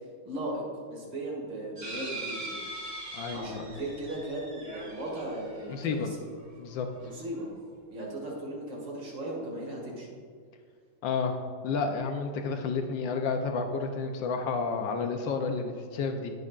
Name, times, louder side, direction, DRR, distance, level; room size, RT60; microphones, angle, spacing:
voice 1, 0.2-0.6 0.9-2.6 3.3-6.2 7.0-7.5 7.9-10.1, right 1 dB, 80° right, -3 dB, 2.7 m, -37 dB
sound 1, 1.8-6.4 7.0-7.1 7.4-7.5, right 2 dB, 35° right, 1.8 m, -41 dB
voice 2, 3.1-3.7 5.7-6.1 6.6-6.9 11.0-16.3, left 4 dB, 85° left, 4 dB, 1.4 m, -31 dB
19.0 x 6.5 x 2.4 m, 2.1 s
omnidirectional pair, 2.0 m